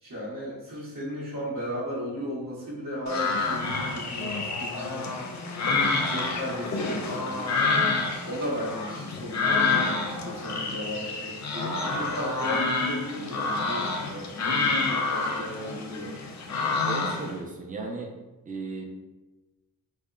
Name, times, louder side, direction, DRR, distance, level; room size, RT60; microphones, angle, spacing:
voice 1, 0.0-5.1 5.6-7.5 8.2-16.1, equal, 60° right, -7 dB, 1.0 m, -35 dB
sound 1, 3.1-17.4, left 3 dB, 50° left, 0.5 m, -28 dB
voice 2, 16.9-18.1 18.5-18.8, right 3 dB, 20° right, 1 dB, 0.5 m, -35 dB
2.7 x 2.1 x 2.3 m, 1.1 s
cardioid pair, 60°, 37 cm